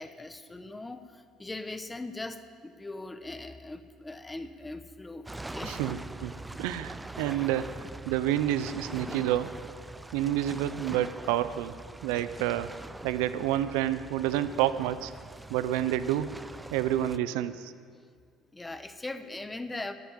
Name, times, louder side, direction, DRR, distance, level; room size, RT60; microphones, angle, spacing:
voice 1, 0.0-6.0 18.5-19.9, left 2 dB, 15° left, 10 dB, 1.0 m, -40 dB
sound 1, 5.2-17.2, right 2 dB, 10° right, 0.5 m, -43 dB
voice 2, 5.6-6.3 6.6-7.7 8.1-9.5 10.1-11.7 12.0-12.7 13.0-15.1 15.5-16.4 16.7-17.7, right 12 dB, 85° right, 13 dB, 0.6 m, -29 dB
12.0 x 9.3 x 9.2 m, 2.1 s
supercardioid pair, 80°, 0 cm